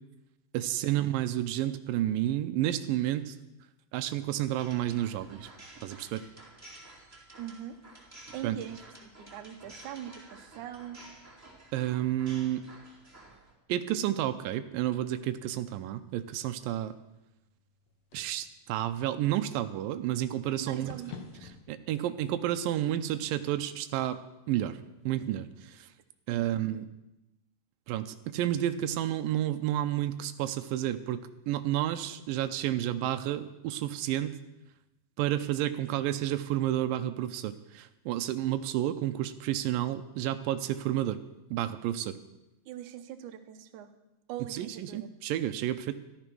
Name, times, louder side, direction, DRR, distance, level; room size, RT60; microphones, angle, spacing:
voice 1, 0.5-3.4 3.9-5.5 5.8-6.2 8.4-8.6 11.7-12.7 13.7-16.9 18.1-20.9 21.7-24.2 24.5-24.8 25.1-25.9 26.3-26.9 27.9-34.3 35.2-41.2 41.5-42.2 44.5-45.9, right 12 dB, 90° right, 10 dB, 2.4 m, -31 dB
sound 1, 4.6-13.5, right 2 dB, 5° right, 2.6 m, -51 dB
voice 2, 7.4-7.8 8.3-11.0 20.6-21.1 21.4-21.5 26.3-26.8 42.7-43.9 44.3-45.1, right 10 dB, 70° right, 7 dB, 2.2 m, -42 dB
sound 2, 14.6-21.6, left 5 dB, 70° left, 2.9 m, -52 dB
13.5 x 12.5 x 6.1 m, 0.95 s
omnidirectional pair, 4.0 m